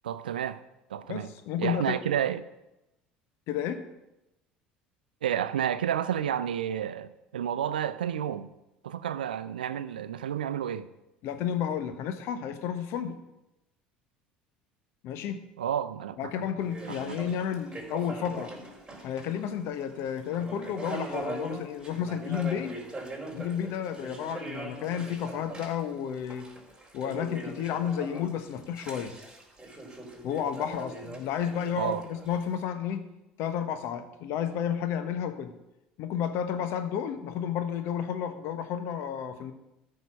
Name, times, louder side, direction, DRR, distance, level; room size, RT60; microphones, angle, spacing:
voice 1, 0.0-0.6 0.9-1.3 1.6-2.5 5.2-8.5 8.8-10.9 15.6-16.5 16.8-17.4 31.7-32.0, right 9 dB, 85° right, 0.5 m, -31 dB
voice 2, 1.1-2.0 3.5-3.8 11.2-13.2 15.0-15.5 16.2-18.5 19.0-22.8 23.3-26.5 26.9-29.1 30.2-33.0 33.4-35.5 36.0-39.5, left 8 dB, 60° left, 1.2 m, -32 dB
sound 1, 16.6-19.5 19.8-32.5, right 2 dB, 15° right, 4.1 m, -41 dB
13.5 x 5.4 x 6.3 m
hypercardioid pair, 65°, 5 cm